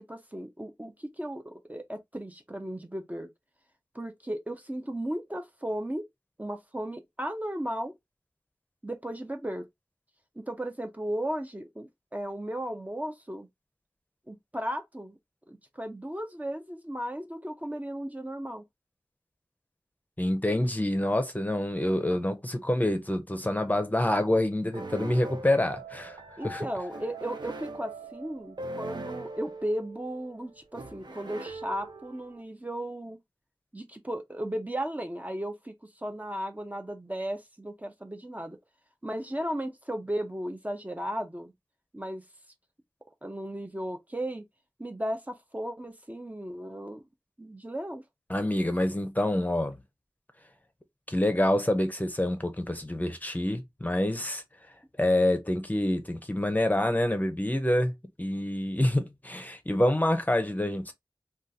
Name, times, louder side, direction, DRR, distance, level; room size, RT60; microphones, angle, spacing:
voice 1, 0.1-3.3 3.9-6.1 6.4-7.9 8.8-9.7 10.4-13.5 14.3-15.2 15.5-18.6 26.4-33.2 33.7-38.6 39.0-41.5 41.9-42.2 43.2-44.4 44.8-47.0 47.4-48.0, right 1 dB, 20° right, 0.5 m, -35 dB
voice 2, 20.2-26.2 26.4-26.7 48.3-49.8 51.1-54.4 55.0-57.9 58.2-60.9, left 1 dB, 20° left, 0.6 m, -27 dB
sound 1, 24.7-32.4, right 2 dB, 65° right, 0.6 m, -41 dB
3.6 x 2.3 x 2.6 m
wide cardioid pair, 55°, 8 cm